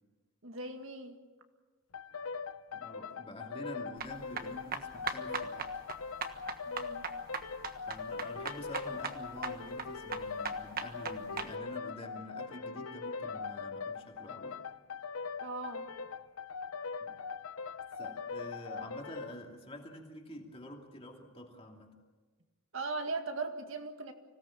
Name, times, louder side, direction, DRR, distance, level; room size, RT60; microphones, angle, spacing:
voice 1, 0.4-1.2 6.7-7.1 15.4-15.9 22.7-24.1, right 3 dB, 65° right, 5 dB, 2.0 m, -39 dB
sound 1, 1.9-19.4, left 5 dB, 85° left, 0.8 m, -41 dB
voice 2, 2.7-5.8 7.9-14.6 17.0-17.2 18.0-22.0, left 1 dB, 25° left, 1 dB, 2.8 m, -47 dB
sound 2, 4.0-11.5, right 5 dB, 45° right, 1.4 m, -40 dB
25.5 x 17.5 x 7.4 m, 1.4 s
head